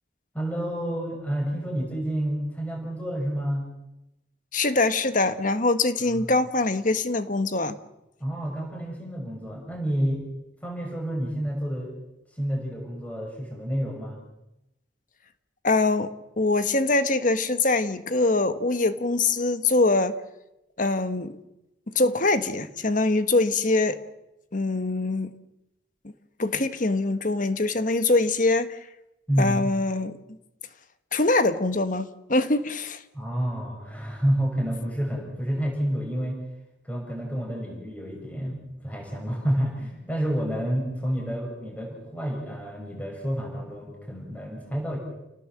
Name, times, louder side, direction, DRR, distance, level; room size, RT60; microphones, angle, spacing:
voice 1, 0.3-3.7 6.1-6.3 8.2-10.2 10.6-11.9 12.3-14.2 29.3-29.6 33.1-36.4 36.8-45.0, equal, 10° left, -1 dB, 6.3 m, -29 dB
voice 2, 4.5-7.8 15.6-20.1 20.8-21.4 21.9-24.0 24.5-25.3 26.0-26.1 26.4-28.8 29.4-30.2 31.1-33.0, left 2 dB, 45° left, 10 dB, 1.5 m, -23 dB
30.0 x 18.5 x 7.6 m, 0.92 s
head